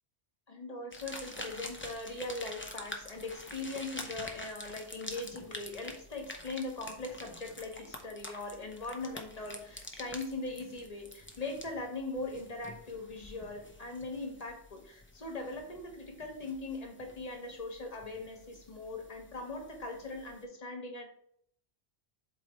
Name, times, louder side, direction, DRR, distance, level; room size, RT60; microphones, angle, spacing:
voice 1, 0.5-21.1, left 2 dB, 40° left, 2 dB, 1.2 m, -40 dB
sound 1, 0.9-20.4, left 1 dB, 15° left, 0.6 m, -48 dB
7.9 x 3.2 x 4.4 m, 0.68 s
omnidirectional pair, 1.1 m